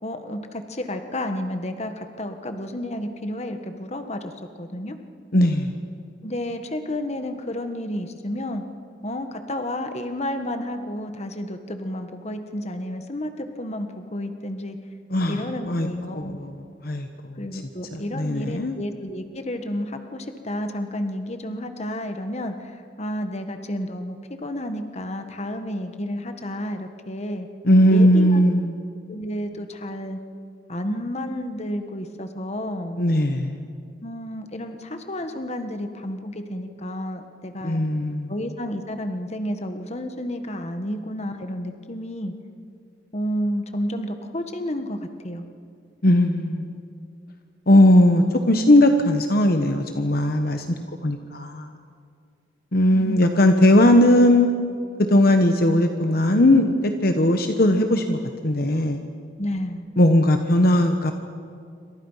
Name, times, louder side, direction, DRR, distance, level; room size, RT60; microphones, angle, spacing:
voice 1, 0.0-5.0 6.2-8.6 9.0-14.8 15.3-16.4 17.4-27.5 27.9-28.4 29.1-30.2 30.7-33.0 34.0-37.8 38.3-42.3 43.1-45.4 52.9-53.2 59.4-59.8, left 1 dB, 35° left, 7 dB, 1.5 m, -31 dB
voice 2, 5.3-5.7 15.1-15.4 15.7-15.9 16.1-16.5 16.8-17.6 17.9-18.7 27.6-28.7 33.0-33.6 37.6-38.3 46.0-46.7 47.7-50.7 51.0-51.7 52.7-54.5 55.0-58.2 58.4-59.0 60.0-61.1, left 1 dB, 55° left, 6 dB, 1.2 m, -18 dB
28.0 x 25.5 x 5.7 m, 2.3 s
head